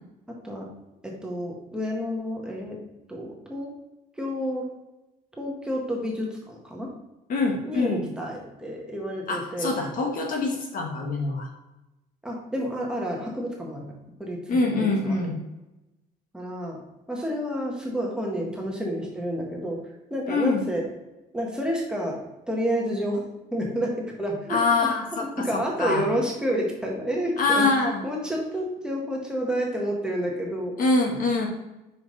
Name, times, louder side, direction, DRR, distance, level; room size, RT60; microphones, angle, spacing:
voice 1, 0.3-0.7 1.0-2.8 3.1-3.7 4.2-4.7 5.4-6.9 7.7-9.7 12.2-13.9 14.2-15.2 16.3-16.8 17.1-19.8 20.1-20.8 21.3-22.2 22.5-23.2 23.5-24.6 25.2-27.6 28.0-30.7, equal, 5° right, -2 dB, 1.5 m, -29 dB
voice 2, 7.3-8.0 9.3-11.5 14.5-15.4 20.3-20.6 24.5-26.0 27.4-28.1 30.8-31.5, left 3 dB, 55° left, 1 dB, 1.4 m, -24 dB
5.3 x 4.5 x 4.0 m, 0.98 s
cardioid pair, 110°, 17 cm